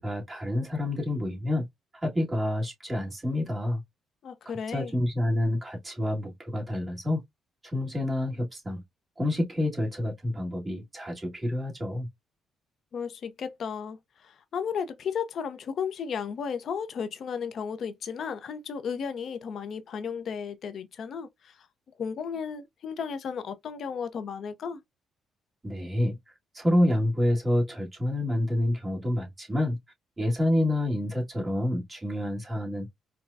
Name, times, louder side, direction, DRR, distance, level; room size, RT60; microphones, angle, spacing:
voice 1, 0.0-1.7 2.0-3.8 4.7-7.2 7.6-8.8 9.2-12.1 25.6-26.2 26.5-29.8 30.2-32.9, left 1 dB, 20° right, 1.8 m, -28 dB
voice 2, 4.2-4.9 12.9-14.0 14.2-21.3 22.0-24.8, left 6 dB, 60° left, 0.7 m, -34 dB
4.6 x 2.2 x 2.5 m
cardioid pair, 90°, 0 cm